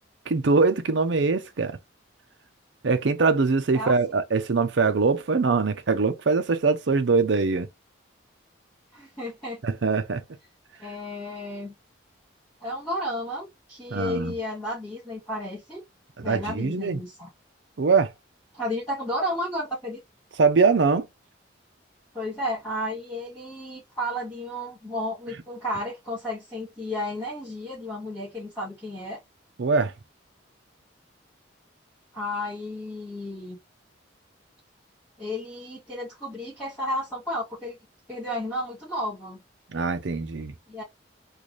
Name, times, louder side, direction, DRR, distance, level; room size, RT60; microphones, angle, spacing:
voice 1, 0.3-1.8 2.8-7.7 9.6-10.2 13.9-14.3 16.2-17.0 17.8-18.1 20.4-21.1 29.6-29.9 39.7-40.5, right 4 dB, 65° right, 0.5 m, -22 dB
voice 2, 8.9-9.6 10.8-11.7 12.6-15.8 16.2-17.3 18.5-20.0 22.1-29.2 32.1-33.6 35.2-37.8 38.1-39.4 40.7-40.8, left 1 dB, 10° left, 2.1 m, -32 dB
3.9 x 2.4 x 3.1 m
head